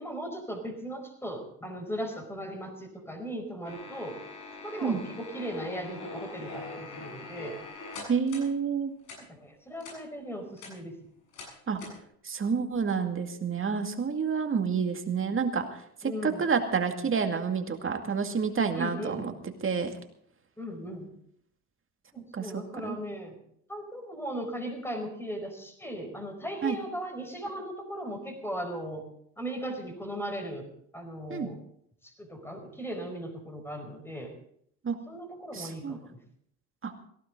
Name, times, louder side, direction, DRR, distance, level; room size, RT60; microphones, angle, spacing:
voice 1, 0.0-4.2 4.6-7.6 9.2-10.9 16.0-16.4 18.7-19.3 20.6-21.1 22.1-23.3 23.7-29.0 29.4-30.6 30.9-31.6 32.2-34.3 35.1-36.2, equal, 5° left, 4 dB, 4.7 m, -37 dB
sound 1, 3.6-8.5 9.0-9.2 9.8-10.0 10.4-10.7 11.3-11.5 11.8-12.0, left 3 dB, 70° left, 7.6 m, -42 dB
voice 2, 8.1-8.9 11.7-11.8 12.2-19.9 22.3-23.0 26.6-26.8 31.3-31.5 34.8-35.0 35.5-36.0 36.8-36.9, right 6 dB, 25° right, 5 dB, 2.3 m, -29 dB
17.5 x 16.0 x 3.9 m, 0.68 s
hypercardioid pair, 70°, 46 cm